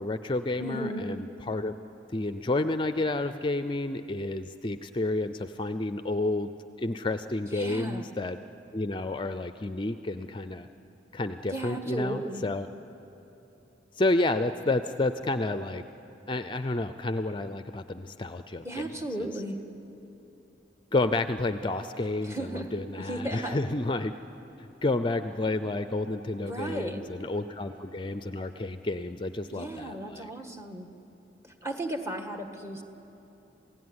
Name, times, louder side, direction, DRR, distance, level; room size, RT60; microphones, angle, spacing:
voice 1, 0.0-1.7 2.1-6.5 6.8-8.4 8.7-10.7 11.1-12.7 14.0-15.8 16.3-18.8 19.2-19.3 20.9-24.1 24.8-30.3, left 2 dB, 25° left, 10 dB, 0.5 m, -30 dB
voice 2, 0.6-1.1 7.5-8.0 11.5-12.5 18.6-19.6 22.2-23.6 26.4-27.0 29.5-30.9 31.4-32.8, right 1 dB, 15° right, 5 dB, 1.6 m, -35 dB
sound 1, 21.3-28.8, equal, 45° right, 1.8 m, -54 dB
28.0 x 17.0 x 9.7 m, 3.0 s
head